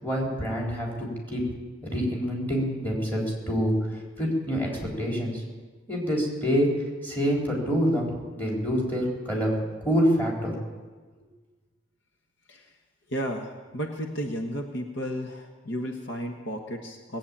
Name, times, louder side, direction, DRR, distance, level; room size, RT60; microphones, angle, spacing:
voice 1, 0.0-1.5 1.8-3.7 4.2-5.4 5.9-9.5 9.8-10.5, equal, 10° left, -2 dB, 4.0 m, -26 dB
voice 2, 13.1-17.2, equal, 65° left, 3 dB, 1.4 m, -33 dB
19.5 x 8.5 x 8.7 m, 1.4 s
head